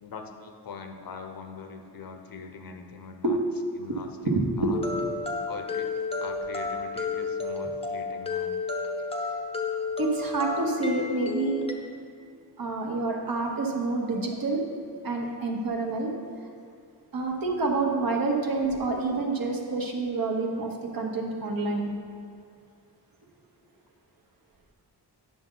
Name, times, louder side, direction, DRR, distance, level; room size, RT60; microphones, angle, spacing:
voice 1, 0.0-4.8 5.5-8.6 17.5-17.7 19.8-19.9, left 5 dB, 55° left, 5 dB, 0.7 m, -43 dB
voice 2, 3.9-4.8 10.0-11.6 12.6-14.6 15.0-16.1 17.1-21.9, right 3 dB, 55° right, 1 dB, 1.0 m, -28 dB
sound 1, 4.7-11.7, left 4 dB, 15° left, 0.6 m, -31 dB
9.1 x 6.4 x 3.8 m, 2.3 s
wide cardioid pair, 170°, 41 cm